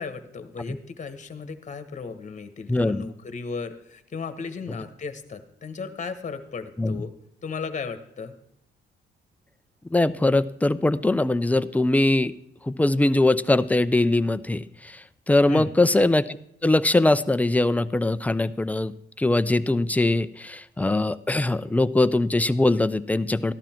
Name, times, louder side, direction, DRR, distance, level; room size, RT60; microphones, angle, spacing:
voice 1, 0.0-7.1 7.4-8.3 15.5-15.7, left 5 dB, 40° left, 10 dB, 1.3 m, -35 dB
voice 2, 2.7-3.0 6.8-7.0 9.9-12.3 12.7-15.0 15.3-23.5, left 2 dB, 5° left, 13 dB, 0.5 m, -22 dB
14.0 x 11.5 x 4.5 m, 0.75 s
cardioid pair, 90°, 20 cm